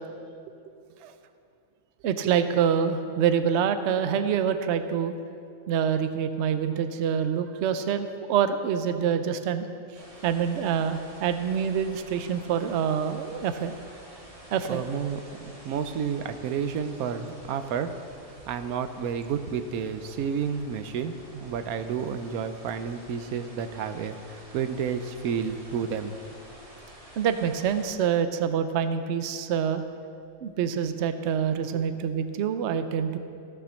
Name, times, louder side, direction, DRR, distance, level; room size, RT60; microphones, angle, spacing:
voice 1, 2.0-5.1 5.7-9.7 10.2-13.7 14.5-14.8 27.2-29.8 30.4-33.2, right 8 dB, 60° right, 9 dB, 0.8 m, -26 dB
sound 1, 9.9-27.9, equal, 25° right, 1.9 m, -49 dB
voice 2, 14.7-17.9 18.5-26.1, right 7 dB, 90° right, 9 dB, 1.1 m, -31 dB
15.5 x 5.9 x 6.4 m, 2.4 s
omnidirectional pair, 1.5 m